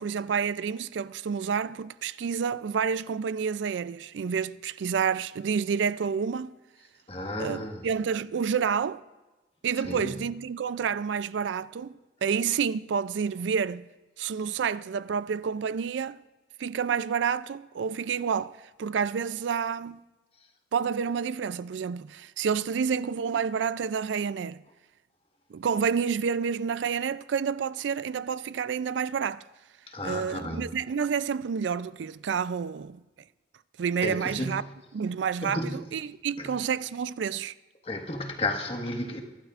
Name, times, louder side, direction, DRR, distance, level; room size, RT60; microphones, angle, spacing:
voice 1, 0.0-6.6 7.4-9.0 9.6-11.9 12.2-13.9 14.2-16.2 16.6-20.0 20.7-24.6 25.5-29.4 30.0-33.0 33.8-34.6 34.9-37.5, right 6 dB, 80° right, 0.4 m, -29 dB
voice 2, 7.1-7.8 9.8-10.2 29.9-30.6 34.0-34.6 35.4-35.8 36.4-36.5 37.8-39.2, left 1 dB, 30° left, 1.5 m, -33 dB
24.0 x 12.0 x 2.5 m
head